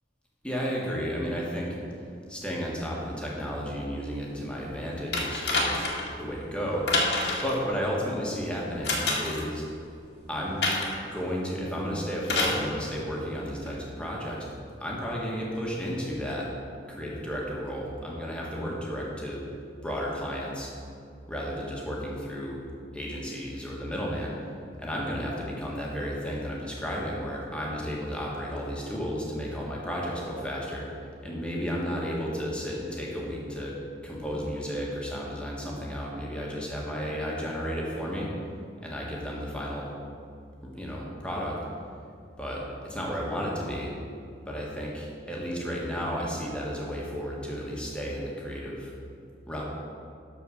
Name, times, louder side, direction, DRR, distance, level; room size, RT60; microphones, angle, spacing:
voice 1, 0.4-1.8 2.3-5.9 6.2-6.9 7.4-9.6 10.3-14.5 14.8-16.5 16.9-19.4 19.8-20.7 21.3-22.6 22.9-24.4 24.8-30.9 31.2-33.7 34.0-38.3 38.8-39.9 40.6-41.6 42.4-43.9 44.5-48.9 49.5-49.6, equal, 5° left, -4 dB, 1.7 m, -33 dB
sound 1, 5.1-6.1 6.9-7.6 8.8-9.4 10.6-11.0 12.2-12.6 13.7-13.8, left 2 dB, 70° left, 1.9 m, -27 dB
12.5 x 4.6 x 6.4 m, 2.4 s
head